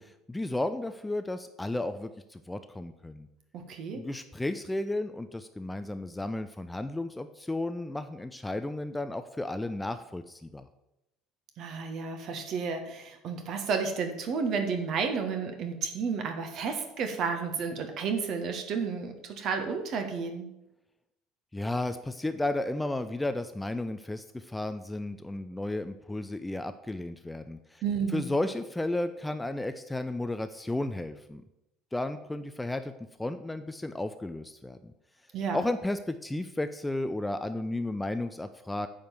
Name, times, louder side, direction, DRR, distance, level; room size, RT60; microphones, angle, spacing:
voice 1, 0.0-3.3 3.9-10.7 21.5-27.8 28.1-31.4 31.9-32.9 33.2-34.9 35.5-38.9, left 2 dB, 10° left, 10 dB, 0.6 m, -33 dB
voice 2, 3.5-4.0 11.6-20.5 27.8-28.3 35.3-35.6, right 5 dB, 45° right, 5 dB, 1.7 m, -32 dB
9.4 x 5.1 x 7.5 m, 0.90 s
figure-of-eight pair, 65°, 0 cm